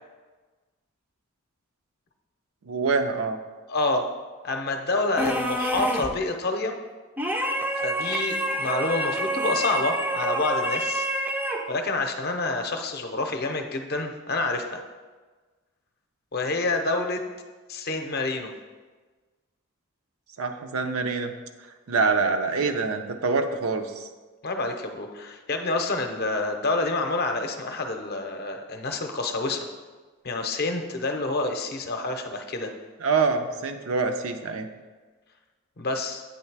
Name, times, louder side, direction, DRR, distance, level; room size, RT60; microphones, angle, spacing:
voice 1, 2.6-3.4 20.4-21.3 21.9-24.1 33.0-34.7, right 4 dB, 75° right, 6 dB, 0.6 m, -25 dB
voice 2, 3.7-4.1 4.4-6.7 7.8-11.1 11.7-14.8 16.3-17.2 17.7-18.5 24.4-29.6 30.2-32.7 35.8-36.2, left 2 dB, 50° left, 5 dB, 0.6 m, -28 dB
sound 1, 5.2-6.2 7.2-11.8, right 1 dB, 10° right, 0.4 m, -27 dB
8.6 x 3.2 x 4.6 m, 1.3 s
head